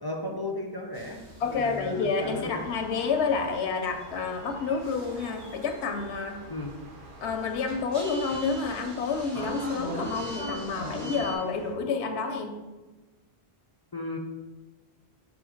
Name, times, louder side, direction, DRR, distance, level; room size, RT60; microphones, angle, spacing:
voice 1, 0.0-2.7 6.5-6.7 13.9-14.2, left 2 dB, 40° left, 2 dB, 0.3 m, -35 dB
sound 1, 0.9-11.4, equal, 90° right, 2.0 m, -41 dB
voice 2, 1.4-6.4 7.2-12.6, left 5 dB, 85° left, 6 dB, 0.9 m, -29 dB
sound 2, 2.1-11.7, right 2 dB, 55° right, 0.9 m, -49 dB
6.1 x 3.1 x 4.9 m, 1.2 s
omnidirectional pair, 1.1 m